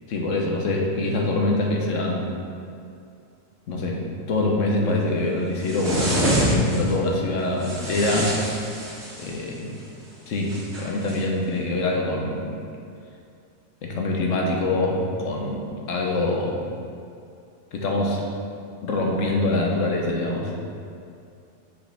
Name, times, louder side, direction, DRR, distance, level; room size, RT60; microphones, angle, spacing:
voice 1, 0.1-2.3 3.7-8.4 9.2-9.7 10.3-12.5 13.8-16.7 17.7-18.2 18.8-20.5, left 2 dB, 70° left, -1 dB, 1.2 m, -24 dB
sound 1, 5.6-6.9 7.6-9.4 10.5-11.2, right 1 dB, 55° right, 1.8 m, -26 dB
6.6 x 5.1 x 3.3 m, 2.5 s
omnidirectional pair, 1.4 m